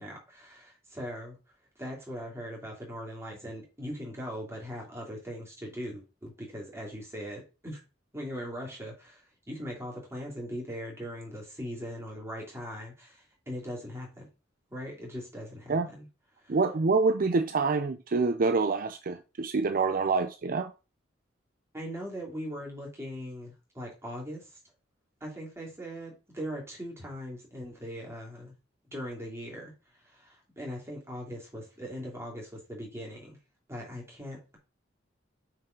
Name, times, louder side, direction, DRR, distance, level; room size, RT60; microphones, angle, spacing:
voice 1, 0.0-1.4 1.8-7.8 8.1-9.2 9.5-14.3 14.7-16.1 16.5-16.6 21.7-24.5 25.2-28.5 28.9-29.7 30.1-33.4 33.7-34.6, equal, 15° right, 3.1 m, -40 dB
voice 2, 16.5-20.7, right 4 dB, 50° right, 0.5 m, -26 dB
6.3 x 4.9 x 5.2 m
head